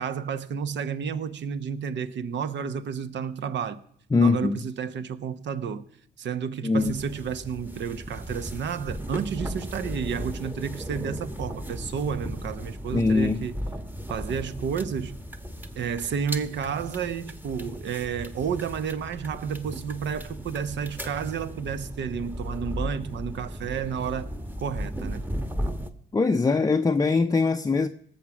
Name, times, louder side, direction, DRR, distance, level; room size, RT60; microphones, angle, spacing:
voice 1, 0.0-3.8 4.2-5.8 6.2-13.6 14.1-15.1 15.7-24.3 24.6-25.3, right 7 dB, 65° right, 1.0 m, -31 dB
voice 2, 4.1-4.6 6.6-6.9 12.9-13.4 26.1-27.9, left 4 dB, 20° left, 0.5 m, -22 dB
sound 1, 6.8-25.9, equal, 10° right, 1.1 m, -36 dB
18.0 x 7.3 x 6.1 m
cardioid pair, 90°, 20 cm